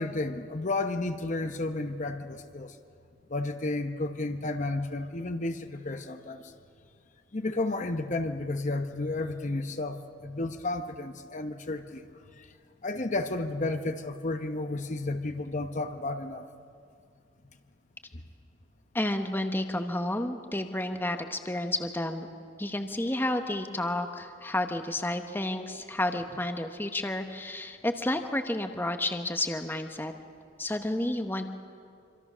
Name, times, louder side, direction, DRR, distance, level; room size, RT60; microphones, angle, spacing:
voice 1, 0.0-2.8 3.3-6.5 7.3-12.0 12.4-12.5 12.8-16.4, left 2 dB, 40° left, 7 dB, 0.9 m, -32 dB
voice 2, 18.9-22.3 22.6-30.1 30.6-31.5, left 1 dB, 10° left, 6 dB, 1.0 m, -31 dB
26.0 x 25.5 x 6.2 m, 2.4 s
head